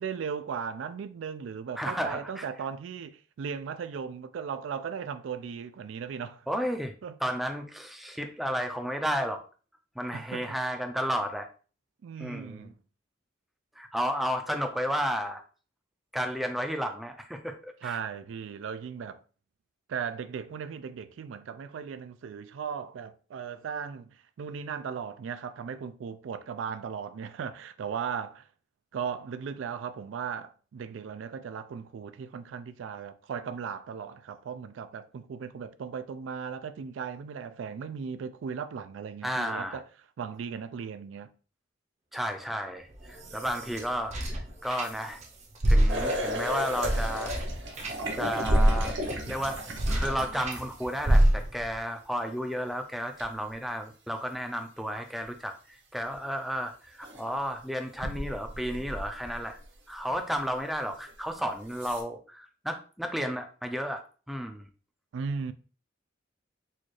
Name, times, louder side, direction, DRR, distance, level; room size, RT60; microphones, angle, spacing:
voice 1, 0.0-6.5 7.0-7.1 10.1-10.6 12.0-12.7 17.8-19.2 19.9-24.1 24.4-28.4 28.9-39.8 40.2-41.3 65.1-65.5, right 6 dB, 85° right, 0.3 m, -37 dB
voice 2, 1.8-2.5 6.5-6.9 7.2-9.4 10.0-11.5 12.2-12.7 13.8-15.4 16.1-18.0 39.2-39.8 42.1-45.2 45.7-47.3 48.1-49.0 49.2-49.6 49.9-59.6 59.9-64.7, equal, ahead, 0.4 m, -32 dB
sound 1, 42.9-45.3 45.6-50.6 51.0-51.7, right 1 dB, 40° right, 0.7 m, -27 dB
sound 2, 45.9-51.2 53.2-53.3 56.1-56.2 57.0-57.3 57.9-59.6 60.1-60.2 61.1-61.2 61.7-62.0, equal, 65° right, 0.9 m, -35 dB
4.2 x 2.4 x 3.1 m
head